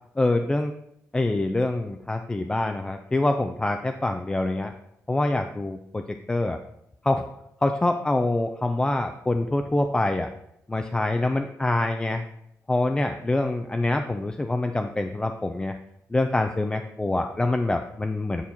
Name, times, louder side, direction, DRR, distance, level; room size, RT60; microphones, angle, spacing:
voice 1, 0.2-0.7 1.1-4.7 5.1-6.6 7.0-7.3 7.6-10.3 10.7-12.2 12.7-15.8 16.1-18.4, left 2 dB, 15° left, 5 dB, 0.3 m, -25 dB
9.5 x 4.3 x 2.8 m, 0.79 s
cardioid pair, 110°, 6 cm